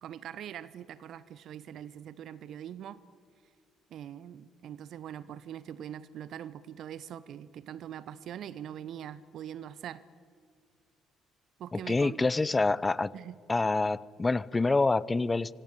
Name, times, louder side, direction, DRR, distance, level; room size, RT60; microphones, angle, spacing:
voice 1, 0.0-3.0 3.9-10.0 11.6-12.3 13.1-13.4, right 10 dB, 60° right, 18 dB, 0.8 m, -42 dB
voice 2, 11.7-13.1 13.5-15.5, left 3 dB, 25° left, 22 dB, 0.8 m, -27 dB
26.5 x 23.5 x 8.6 m, 2.2 s
figure-of-eight pair, 45°, 0 cm